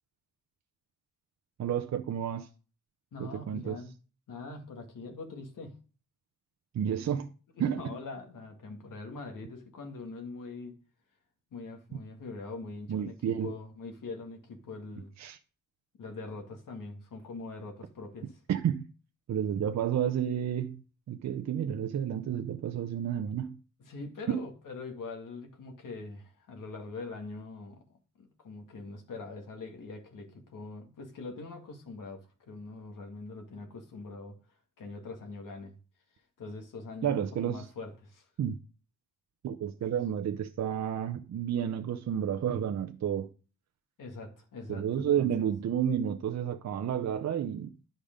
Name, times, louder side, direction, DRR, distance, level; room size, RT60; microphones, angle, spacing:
voice 1, 1.6-2.5 3.2-3.8 6.7-7.3 7.6-8.0 12.9-13.5 15.2-15.4 18.5-18.9 19.3-20.8 21.1-23.6 24.3-24.4 37.0-37.7 38.4-38.6 39.4-43.3 44.7-47.7, right 9 dB, 50° right, 0.6 m, -31 dB
voice 2, 3.1-3.9 4.3-5.8 7.0-7.1 7.6-10.8 11.5-15.1 16.0-18.4 23.8-35.8 36.4-38.3 39.9-40.0 44.0-45.5, left 3 dB, 65° left, 2.0 m, -43 dB
10.5 x 5.2 x 5.2 m
wide cardioid pair, 155°, 35 cm